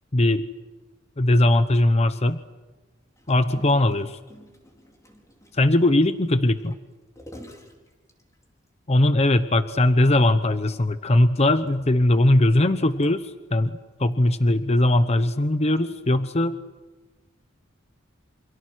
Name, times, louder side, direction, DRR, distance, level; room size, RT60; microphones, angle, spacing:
voice 1, 0.1-0.5 1.2-2.4 3.3-4.2 5.5-6.7 8.9-16.6, left 1 dB, 35° left, 11 dB, 0.9 m, -20 dB
Gurgling, 3.2-8.7 9.2-9.3 9.6-9.8 10.1-10.2 11.0-13.5 14.1-14.3, equal, 15° left, 4.7 m, -49 dB
28.5 x 27.5 x 6.3 m, 1.2 s
head